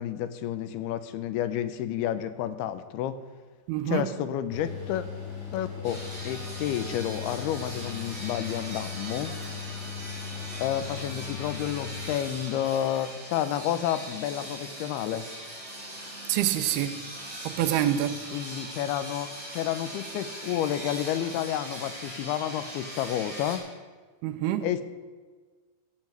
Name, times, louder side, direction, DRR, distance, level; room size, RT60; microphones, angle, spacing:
voice 1, 0.0-3.2 3.9-5.1 5.5-9.3 10.6-15.3 18.3-23.6 24.6-24.8, left 11 dB, 80° left, 11 dB, 2.6 m, -30 dB
voice 2, 3.7-4.1 16.3-17.0 17.4-18.2 24.2-24.7, right 12 dB, 85° right, 10 dB, 2.6 m, -26 dB
Mechanical fan, 4.5-12.9, left 7 dB, 65° left, 4.8 m, -39 dB
sound 1, 5.8-23.6, right 1 dB, 5° right, 4.8 m, -40 dB
14.5 x 7.6 x 7.8 m, 1.4 s
omnidirectional pair, 4.6 m